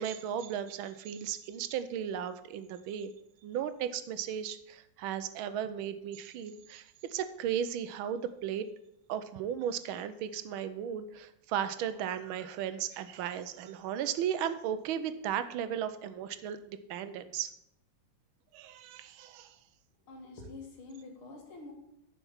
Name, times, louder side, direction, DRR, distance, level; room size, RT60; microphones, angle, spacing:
voice 1, 0.0-3.1 3.4-6.8 7.1-8.6 9.1-17.5 18.5-19.5, right 9 dB, 80° right, 12 dB, 1.5 m, -35 dB
voice 2, 20.0-21.7, left 3 dB, 90° left, 2 dB, 2.6 m, -47 dB
7.1 x 5.8 x 7.2 m, 0.79 s
omnidirectional pair, 2.2 m